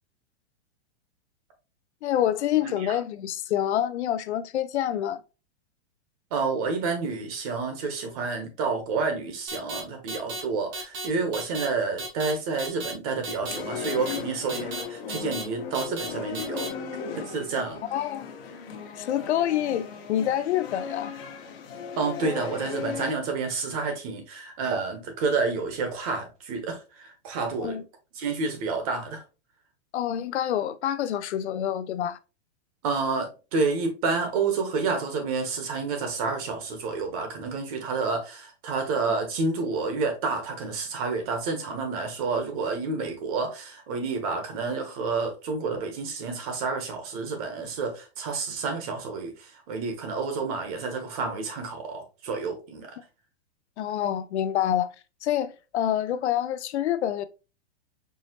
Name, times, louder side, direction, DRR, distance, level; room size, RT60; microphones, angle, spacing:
voice 1, 2.0-5.2 17.9-18.3 19.0-21.1 27.6-27.8 29.9-32.2 53.8-54.9 55.2-57.2, left 11 dB, 85° left, 0.6 m, -27 dB
voice 2, 2.6-3.0 6.3-16.7 17.2-17.8 22.0-27.8 28.1-29.2 32.8-53.0, right 4 dB, 35° right, 1.0 m, -29 dB
sound 1, 9.5-9.8 10.1-10.4 10.7-11.1 11.3-11.7 12.0-12.3 12.6-12.9 13.2-13.6 13.8-14.2 14.5-14.8 15.1-15.4 15.7-16.1 16.3-16.7, right 2 dB, 15° right, 0.4 m, -34 dB
sound 2, 13.5-23.1, left 6 dB, 60° left, 1.1 m, -37 dB
4.8 x 2.7 x 2.8 m
supercardioid pair, 165°, 33 cm